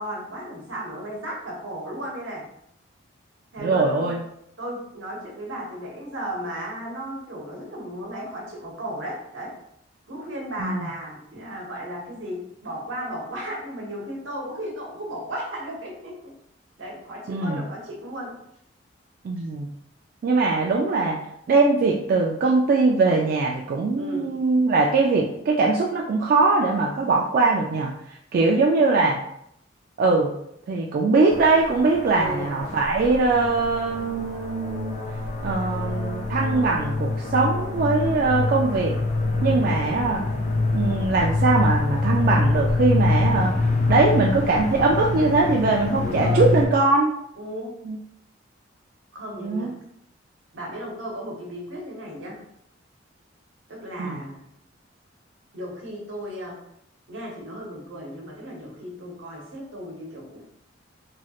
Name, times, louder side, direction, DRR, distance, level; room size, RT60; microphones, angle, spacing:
voice 1, 0.0-2.5 3.5-4.1 4.6-9.5 10.1-16.3 16.8-18.3 19.4-19.5 24.0-24.3 32.1-32.5 39.4-39.7 46.0-46.5 47.4-47.8 49.1-49.7 50.5-52.4 53.7-54.4 55.5-56.6 57.1-60.4, equal, 80° right, -2 dB, 0.9 m, -35 dB
voice 2, 3.6-4.2 10.6-10.9 17.3-17.6 19.2-19.7 20.2-21.2 21.5-27.9 28.3-29.2 30.0-30.3 30.7-35.0 35.4-38.9 39.4-40.2 40.7-43.5 43.9-47.2 47.9-48.0 49.4-49.7 54.0-54.2, right 3 dB, 50° right, -1 dB, 0.3 m, -21 dB
sound 1, 31.3-46.7, left 3 dB, 40° left, 0.4 m, -25 dB
3.1 x 2.9 x 2.3 m, 0.73 s
head